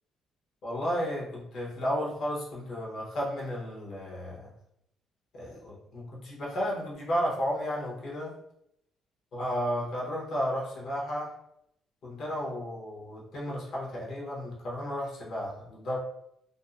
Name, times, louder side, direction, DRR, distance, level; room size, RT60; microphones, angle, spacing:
voice 1, 0.6-4.5 5.3-8.3 9.3-11.3 12.0-16.0, equal, 60° left, -4 dB, 0.9 m, -33 dB
2.6 x 2.0 x 2.4 m, 0.76 s
cardioid pair, 110°, 0 cm